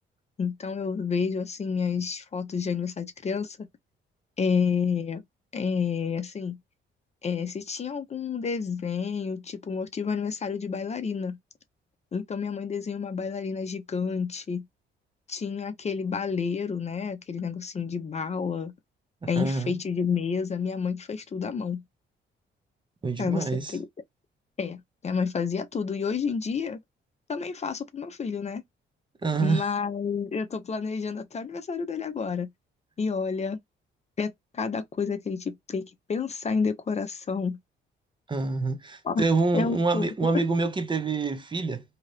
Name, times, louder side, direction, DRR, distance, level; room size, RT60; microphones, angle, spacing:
voice 1, 0.4-3.7 4.4-5.2 5.5-6.6 7.2-11.4 12.1-14.7 15.3-18.7 19.3-21.8 23.2-23.9 24.6-26.8 27.3-28.6 29.4-32.5 33.0-33.6 34.2-37.6 39.0-39.3 39.5-40.3, left 5 dB, 35° left, 0.6 m, -30 dB
voice 2, 19.4-19.8 23.0-23.7 29.2-29.6 38.3-41.8, right 3 dB, 25° right, 0.6 m, -26 dB
2.8 x 2.4 x 3.2 m
cardioid pair, 90°, 20 cm